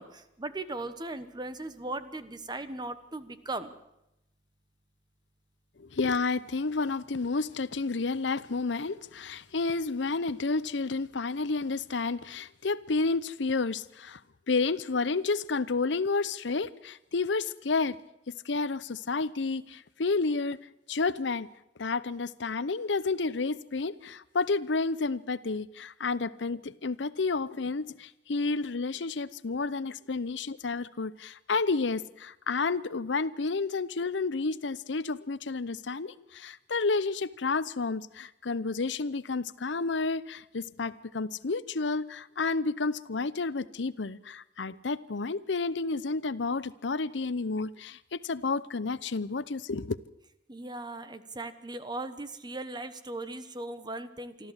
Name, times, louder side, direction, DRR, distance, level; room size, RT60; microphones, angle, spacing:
voice 1, 0.0-3.7 50.5-54.5, right 2 dB, 25° right, 11 dB, 1.2 m, -38 dB
voice 2, 5.8-14.2 14.5-18.0 18.3-20.6 20.9-21.5 21.8-50.0, left 3 dB, 85° left, 17 dB, 0.8 m, -30 dB
25.5 x 13.5 x 8.1 m, 0.87 s
head